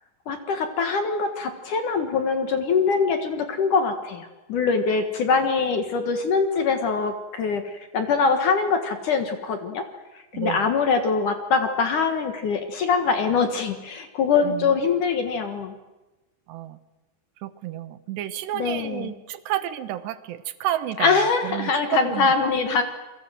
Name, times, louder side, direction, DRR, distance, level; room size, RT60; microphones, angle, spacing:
voice 1, 0.3-9.8 10.2-15.8 18.6-19.1 21.0-22.8, left 5 dB, 55° left, 7 dB, 2.5 m, -23 dB
voice 2, 10.3-10.7 14.4-14.8 16.5-16.8 17.4-22.5, right 12 dB, 75° right, 13 dB, 3.1 m, -31 dB
28.0 x 23.0 x 7.7 m, 1.1 s
omnidirectional pair, 5.1 m